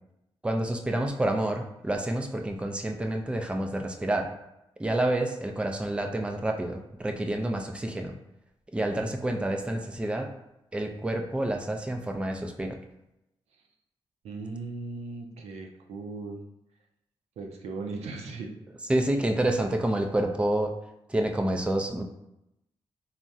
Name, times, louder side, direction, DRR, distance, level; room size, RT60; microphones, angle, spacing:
voice 1, 0.4-4.3 4.8-8.1 8.7-10.3 10.7-12.8 18.9-20.7 21.1-22.0, right 1 dB, 10° right, 3 dB, 0.4 m, -28 dB
voice 2, 14.2-16.5 17.4-18.6, right 3 dB, 85° right, 2 dB, 0.4 m, -38 dB
3.4 x 2.0 x 2.6 m, 0.86 s
cardioid pair, 65°, 11 cm